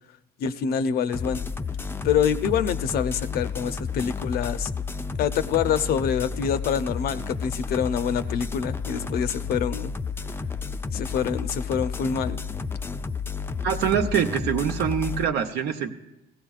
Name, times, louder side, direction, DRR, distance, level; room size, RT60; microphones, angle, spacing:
voice 1, 0.4-1.4 2.0-4.7 5.2-9.9 10.9-12.4, left 7 dB, 65° left, 13 dB, 0.6 m, -26 dB
sound 1, 1.1-15.2, left 5 dB, 15° left, 0.3 m, -31 dB
voice 2, 13.6-15.9, right 8 dB, 85° right, 6 dB, 0.9 m, -24 dB
17.0 x 15.5 x 2.4 m, 0.94 s
cardioid pair, 110°, 17 cm